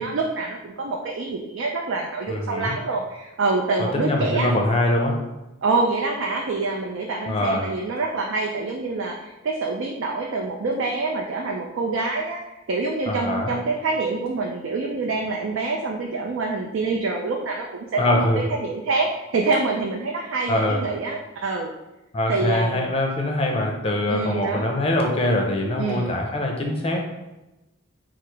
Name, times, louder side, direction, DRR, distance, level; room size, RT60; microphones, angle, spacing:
voice 1, 0.0-4.7 5.6-12.4 12.7-21.7 22.3-22.9 24.1-24.7 25.8-26.2, right 3 dB, 70° right, 1 dB, 0.4 m, -26 dB
voice 2, 2.3-2.7 3.9-5.2 7.3-7.7 13.1-13.5 18.0-18.4 20.5-20.8 22.1-27.0, left 1 dB, 30° left, 2 dB, 0.6 m, -23 dB
4.7 x 2.0 x 4.6 m, 1.0 s
head